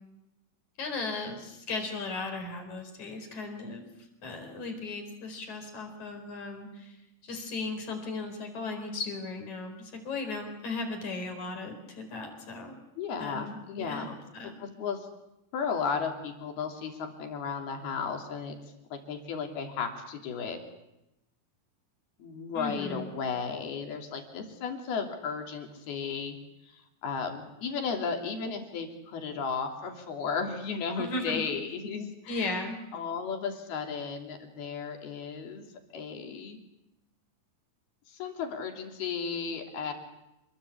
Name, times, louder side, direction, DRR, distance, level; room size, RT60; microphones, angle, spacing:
voice 1, 0.8-3.8 4.2-7.0 7.2-12.8 13.2-14.5 22.5-23.1 31.0-31.4 32.3-32.8, left 3 dB, 50° left, 5 dB, 5.7 m, -36 dB
voice 2, 13.0-14.1 14.4-15.1 15.5-18.5 18.9-20.6 22.2-26.4 26.6-32.6 32.9-35.7 35.9-36.6 38.1-39.9, left 5 dB, 75° left, 4 dB, 5.0 m, -34 dB
28.0 x 21.5 x 8.6 m, 0.91 s
omnidirectional pair, 4.5 m